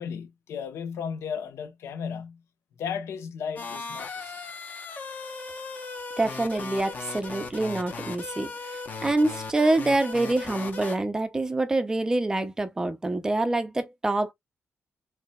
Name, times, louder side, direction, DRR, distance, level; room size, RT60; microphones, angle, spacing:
voice 1, 0.0-2.4 2.8-4.1, left 7 dB, 65° left, 1.0 m, -34 dB
sound 1, 3.6-11.0, left 4 dB, 35° left, 0.9 m, -37 dB
voice 2, 6.2-14.3, right 2 dB, 15° right, 0.6 m, -26 dB
4.6 x 3.3 x 2.2 m
wide cardioid pair, 180°, 5 cm